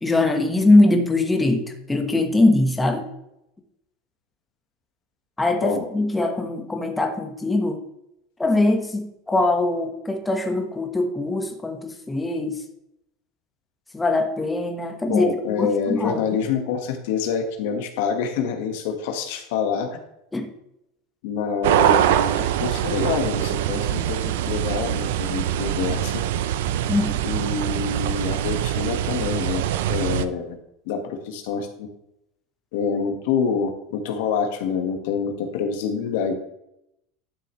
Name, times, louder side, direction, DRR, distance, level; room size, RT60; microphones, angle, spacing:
voice 1, 0.0-3.1 5.4-7.8 8.4-12.6 13.9-15.3 15.6-16.4 20.3-20.5 26.9-27.2, left 2 dB, 10° left, 4 dB, 1.2 m, -22 dB
voice 2, 15.1-20.0 21.2-26.2 27.2-30.6 30.8-31.9 32.7-36.4, left 6 dB, 75° left, 6 dB, 1.5 m, -26 dB
sound 1, 21.6-30.2, right 11 dB, 80° right, 0.6 m, -23 dB
11.5 x 6.5 x 3.2 m, 0.81 s
supercardioid pair, 130°, 0 cm